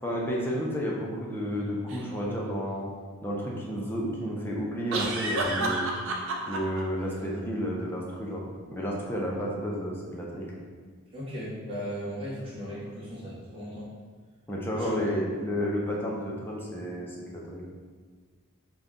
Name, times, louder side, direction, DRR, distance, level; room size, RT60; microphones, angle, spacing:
voice 1, 0.0-2.9 3.2-5.9 6.5-10.6 14.5-17.6, equal, 10° left, -4 dB, 0.5 m, -31 dB
sound 1, 1.9-2.0 4.9-6.8, right 2 dB, 60° right, 0.5 m, -30 dB
voice 2, 11.1-13.9 14.7-15.1, equal, 25° right, -9 dB, 1.1 m, -36 dB
3.9 x 2.3 x 3.7 m, 1.6 s
head